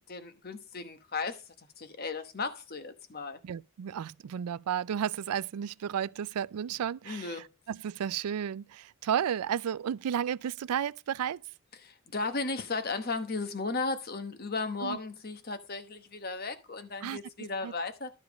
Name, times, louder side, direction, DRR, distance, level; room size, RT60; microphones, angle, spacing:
voice 1, 0.1-3.4 7.0-7.5 11.8-18.1, left 3 dB, 45° left, 1.0 m, -35 dB
voice 2, 3.4-11.4 14.8-15.0 17.0-17.2 17.6-17.7, right 9 dB, 85° right, 0.4 m, -33 dB
11.5 x 4.9 x 5.2 m
head